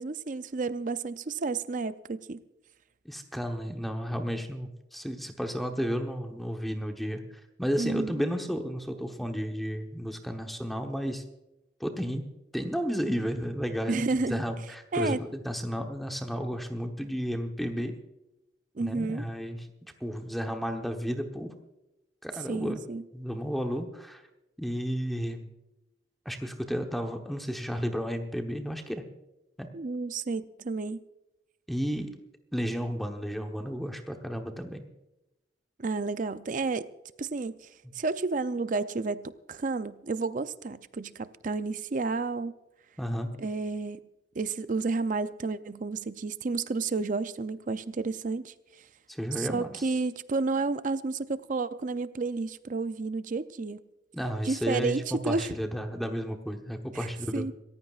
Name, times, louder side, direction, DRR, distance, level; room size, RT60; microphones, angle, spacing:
voice 1, 0.0-2.4 7.8-8.1 13.9-14.4 14.9-15.2 18.8-19.2 22.5-23.0 29.7-31.0 35.8-36.9 37.2-37.7 37.9-42.5 43.4-44.0 44.4-48.5 49.4-53.8 54.4-55.5 56.9-57.5, right 3 dB, 45° right, 13 dB, 0.5 m, -31 dB
voice 2, 3.0-7.2 7.6-11.2 11.8-12.2 12.5-17.9 18.8-19.7 20.0-21.5 22.2-22.8 23.1-24.2 24.6-25.5 26.2-29.0 29.6-29.7 31.7-32.1 32.5-34.8 43.0-43.3 49.1-49.9 54.1-57.5, equal, ahead, 4 dB, 1.0 m, -32 dB
26.5 x 15.0 x 2.4 m, 0.96 s
head